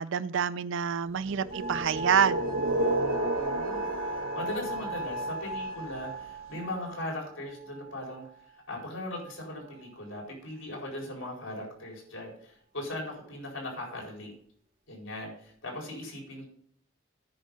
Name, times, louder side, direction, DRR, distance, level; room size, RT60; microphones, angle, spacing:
voice 1, 0.0-2.4, right 7 dB, 65° right, 0.5 m, -27 dB
sound 1, 1.3-6.2, right 2 dB, 80° right, 1.3 m, -32 dB
sound 2, 1.5-8.4 9.3-9.9, right 1 dB, 45° right, 1.4 m, -38 dB
voice 2, 3.3-3.9 4.3-8.2 8.5-14.3 14.9-16.5, left 1 dB, 65° left, 4.3 m, -39 dB
9.9 x 5.3 x 7.8 m
head